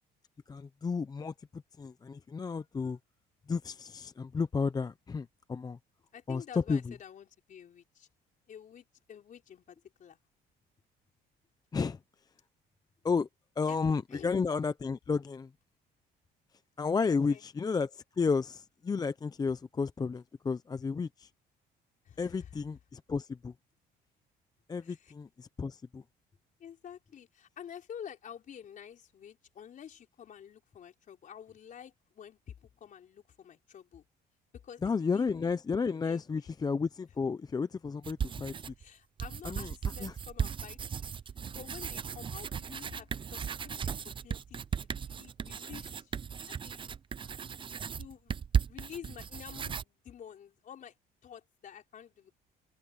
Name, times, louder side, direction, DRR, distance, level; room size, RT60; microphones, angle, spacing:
voice 1, 0.5-3.0 3.5-5.8 6.3-6.9 11.7-12.0 13.0-13.3 13.6-15.5 16.8-21.3 22.2-23.5 24.7-26.0 34.8-38.5 39.4-39.7 40.0-40.1, left 5 dB, 25° left, 0.6 m, -32 dB
voice 2, 6.1-8.1 8.5-10.2 13.7-13.8 14.1-14.3 17.0-17.4 22.0-22.5 24.8-25.1 26.6-34.0 34.5-35.6 36.0-36.4 38.8-41.1 41.5-46.2 46.5-46.8 48.0-48.3 48.7-50.9 51.2-52.3, left 8 dB, 50° left, 4.9 m, -49 dB
sound 1, 38.0-38.8 39.2-49.8, right 7 dB, 30° right, 0.6 m, -36 dB
cardioid pair, 110°, 17 cm